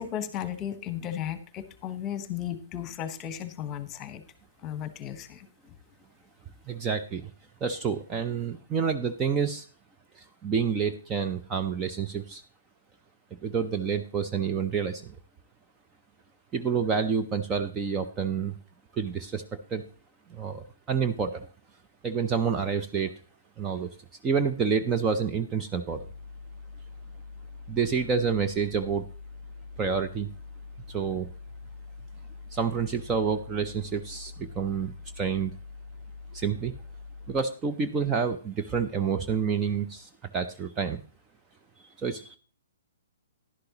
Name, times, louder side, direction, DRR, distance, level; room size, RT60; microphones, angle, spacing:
voice 1, 0.0-4.2 4.6-5.5, left 10 dB, 20° left, 12 dB, 1.2 m, -35 dB
voice 2, 6.7-7.3 7.6-9.6 10.4-12.4 13.4-15.2 16.5-18.6 18.9-19.4 19.7-19.8 20.3-21.5 22.0-23.1 23.6-23.9 24.2-26.1 27.7-29.0 29.8-30.3 30.9-31.3 32.5-35.5 36.3-36.7 37.3-41.0 42.0-42.4, right 6 dB, 20° right, 7 dB, 0.7 m, -28 dB
sound 1, 25.9-37.4, left 4 dB, 55° right, 4.3 m, -44 dB
11.5 x 11.5 x 2.9 m, 0.38 s
figure-of-eight pair, 120°, 0 cm